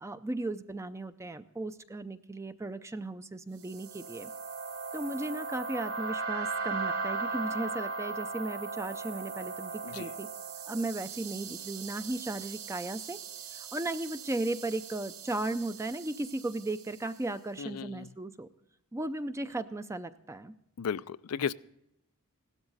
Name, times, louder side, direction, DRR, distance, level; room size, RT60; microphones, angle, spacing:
voice 1, 0.0-4.3 4.9-10.3 10.7-13.2 13.5-18.5 18.9-20.5, right 2 dB, 15° right, 0.5 m, -36 dB
sound 1, 3.6-17.0, right 4 dB, 65° right, 4.4 m, -38 dB
voice 2, 17.6-18.1 20.8-21.5, left 7 dB, 75° left, 0.4 m, -35 dB
16.5 x 12.5 x 4.0 m
head